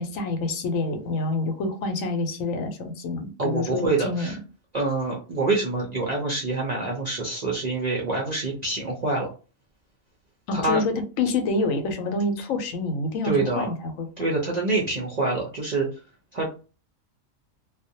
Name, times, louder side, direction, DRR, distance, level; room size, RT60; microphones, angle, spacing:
voice 1, 0.0-4.4 10.5-14.1, left 3 dB, 80° left, 1.0 m, -27 dB
voice 2, 3.4-4.4 4.7-9.3 10.5-10.8 13.2-13.7 14.2-15.9 16.3-16.6, right 3 dB, 60° right, 0.4 m, -26 dB
2.4 x 2.1 x 2.7 m
omnidirectional pair, 1.4 m